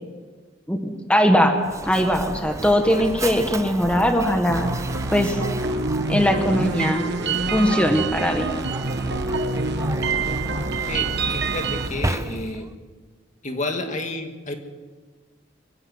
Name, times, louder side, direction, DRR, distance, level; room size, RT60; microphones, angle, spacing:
voice 1, 1.1-1.6 1.8-4.7 5.1-5.4 6.1-7.1 7.5-8.5, equal, 5° left, 4 dB, 1.5 m, -20 dB
Mechanisms, 1.6-12.7, right 2 dB, 15° right, 0.7 m, -33 dB
sound 1, 4.5-11.9, right 3 dB, 60° right, 1.2 m, -26 dB
voice 2, 10.9-12.7 13.4-14.6, left 2 dB, 40° left, 4 dB, 2.1 m, -30 dB
24.5 x 15.0 x 8.0 m, 1.4 s
head